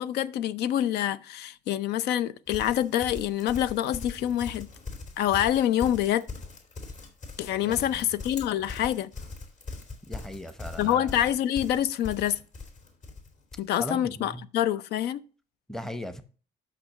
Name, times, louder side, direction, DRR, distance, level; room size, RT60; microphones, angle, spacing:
voice 1, 0.0-4.7 5.2-6.2 7.4-9.1 10.8-12.4 13.6-15.2, left 11 dB, 75° left, 0.6 m, -26 dB
Livestock farm animals working animals, 2.5-13.7, left 3 dB, 45° left, 2.8 m, -41 dB
voice 2, 7.6-8.0 10.1-11.1 13.8-14.4 15.7-16.2, equal, 5° left, 0.7 m, -38 dB
6.1 x 5.9 x 6.5 m
cardioid pair, 110°, 17 cm